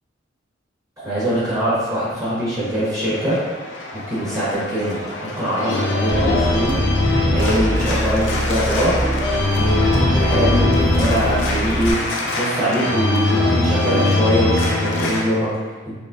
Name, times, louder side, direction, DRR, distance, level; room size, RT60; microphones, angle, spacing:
voice 1, 1.0-3.4 4.1-6.8 7.2-9.0 9.3-12.0 12.3-15.5, equal, 20° right, -10 dB, 1.0 m, -22 dB
Organ, 2.1-15.2, left 2 dB, 70° left, 0.5 m, -22 dB
sound 1, 6.1-11.9, right 1 dB, ahead, 0.4 m, -23 dB
4.6 x 2.1 x 2.5 m, 1.4 s
head